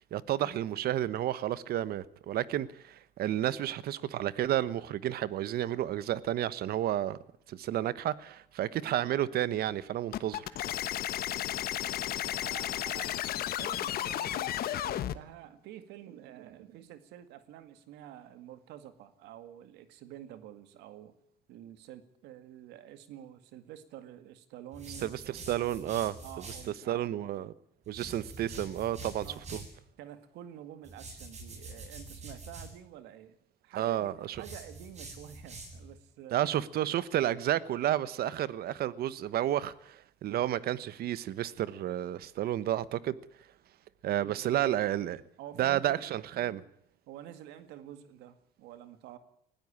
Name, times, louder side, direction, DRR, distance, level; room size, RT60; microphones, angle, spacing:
voice 1, 0.1-7.2 7.5-10.5 25.0-26.2 26.9-27.5 27.9-29.6 33.8-34.4 36.3-43.2 44.0-45.2 45.6-46.6, right 12 dB, 65° right, 1.2 m, -31 dB
sound 1, 10.1-15.2, left 12 dB, 65° left, 1.2 m, -33 dB
voice 2, 11.3-11.9 12.4-21.1 21.5-25.3 26.2-27.1 29.2-29.5 30.0-33.4 33.6-34.1 34.4-36.5 45.4-46.1 47.1-49.2, right 11 dB, 90° right, 2.0 m, -49 dB
sound 2, 24.7-26.7 27.8-29.8 30.8-32.7 34.3-35.9, right 3 dB, 40° right, 7.9 m, -46 dB
20.5 x 16.0 x 8.9 m
cardioid pair, 110°, 17 cm